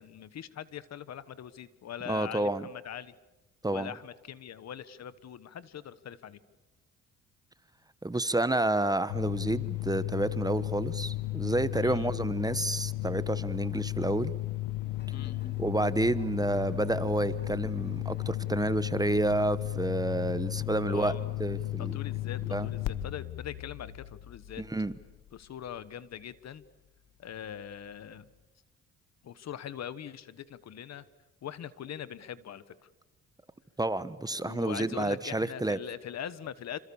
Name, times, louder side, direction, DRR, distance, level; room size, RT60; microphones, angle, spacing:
voice 1, 0.0-3.1 3.7-6.4 11.8-12.1 15.1-15.5 20.8-24.6 25.3-26.6 27.2-28.3 29.2-31.0 31.4-32.7 34.3-36.8, left 9 dB, 60° left, 16 dB, 1.3 m, -42 dB
voice 2, 2.1-2.7 3.6-3.9 8.0-14.3 15.6-21.1 21.4-21.9 22.5-22.7 24.6-24.9 33.8-35.8, right 2 dB, 10° right, 14 dB, 1.1 m, -29 dB
sound 1, 9.1-25.4, left 16 dB, 85° left, 1.0 m, -34 dB
sound 2, 14.8-18.5, left 3 dB, 35° left, 2.8 m, -52 dB
27.0 x 27.0 x 7.1 m, 1.1 s
cardioid pair, 90°, 30 cm